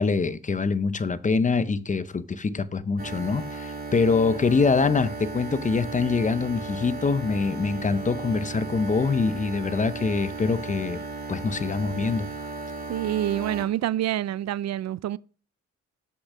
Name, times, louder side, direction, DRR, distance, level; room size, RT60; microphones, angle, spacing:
voice 1, 0.0-11.0 11.3-12.3, left 4 dB, 25° left, 0.7 m, -24 dB
sound 1, 3.0-13.7, right 3 dB, 30° right, 3.1 m, -35 dB
voice 2, 12.9-15.2, right 12 dB, 60° right, 0.5 m, -27 dB
7.9 x 6.9 x 6.1 m
cardioid pair, 90°, 30 cm